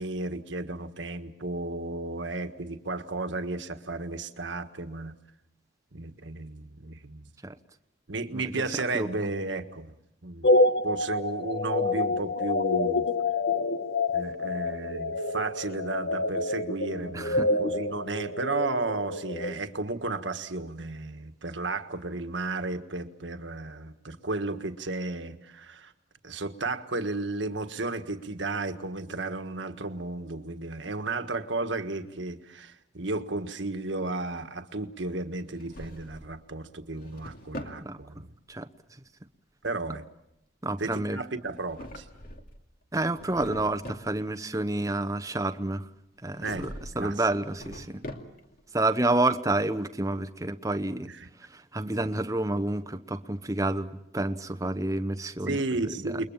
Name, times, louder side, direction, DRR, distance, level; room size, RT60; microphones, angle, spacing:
voice 1, 0.0-5.1 5.9-7.3 8.1-9.9 10.2-10.5 10.8-13.0 14.1-25.9 26.2-38.3 39.6-40.0 40.8-42.1 46.4-46.7 46.9-47.2 51.0-51.3 55.4-56.3, right 2 dB, 70° right, 7 dB, 1.6 m, -33 dB
voice 2, 8.3-8.6 8.9-9.3 17.1-17.5 37.8-38.0 38.5-38.7 40.6-41.2 42.9-45.9 46.2-46.7 47.0-48.0 48.7-51.1 51.4-55.6 56.0-56.2, right 2 dB, 15° right, 9 dB, 0.9 m, -29 dB
sound 1, 10.4-19.6, left 2 dB, 65° left, 1.3 m, -27 dB
Drawer open or close, 35.4-36.4 36.8-37.8 41.5-42.6 43.0-44.1 46.3-47.0 47.3-48.6, equal, 50° left, 2.5 m, -42 dB
29.0 x 22.5 x 7.2 m, 0.82 s
head